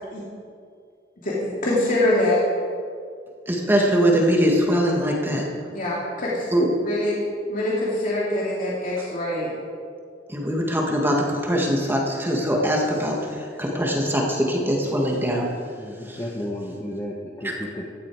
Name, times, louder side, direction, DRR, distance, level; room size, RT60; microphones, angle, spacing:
voice 1, 1.2-2.4 5.7-6.5 6.8-7.2 7.5-9.5, left 1 dB, 45° left, -6 dB, 2.6 m, -24 dB
voice 2, 3.5-5.5 6.5-6.7 10.3-15.5 16.1-16.2 17.4-17.6, equal, 10° right, -1 dB, 1.9 m, -22 dB
voice 3, 15.8-17.9, left 1 dB, 15° left, -2 dB, 1.2 m, -33 dB
16.0 x 11.5 x 4.8 m, 2.3 s
head